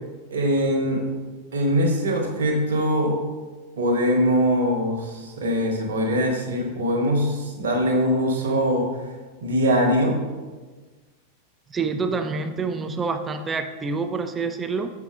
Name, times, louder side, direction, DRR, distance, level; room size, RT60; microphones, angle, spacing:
voice 1, 0.3-1.1 1.5-3.1 3.8-8.9 9.4-10.2, equal, 60° right, 1 dB, 1.0 m, -22 dB
voice 2, 11.7-14.9, right 4 dB, 20° right, 8 dB, 0.4 m, -27 dB
6.7 x 5.6 x 2.5 m, 1.3 s
figure-of-eight pair, 90°, 0 cm